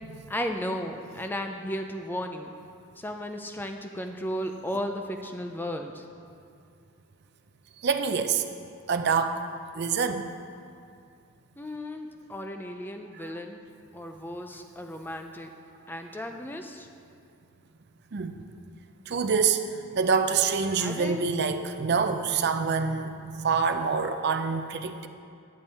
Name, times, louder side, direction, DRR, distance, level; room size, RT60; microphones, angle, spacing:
voice 1, 0.3-2.5 3.0-6.1 11.6-13.7 13.9-15.5 15.9-16.9 20.8-21.3, equal, 10° left, 5 dB, 0.4 m, -35 dB
voice 2, 7.8-8.4 8.9-9.4 9.7-10.3 13.2-13.3 18.1-18.5 19.1-25.1, right 5 dB, 50° right, 7 dB, 0.5 m, -26 dB
10.5 x 7.1 x 4.2 m, 2.5 s
head